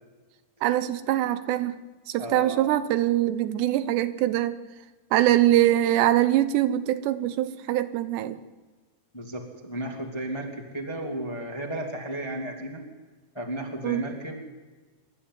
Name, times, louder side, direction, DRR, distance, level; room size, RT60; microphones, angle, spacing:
voice 1, 0.6-1.8 2.1-4.6 5.1-8.4 13.8-14.0, right 13 dB, 85° right, 12 dB, 3.1 m, -23 dB
voice 2, 2.2-2.6 9.1-12.9 13.3-14.4, right 1 dB, 10° left, 1 dB, 1.7 m, -34 dB
25.0 x 13.0 x 9.7 m, 1.3 s
omnidirectional pair, 4.9 m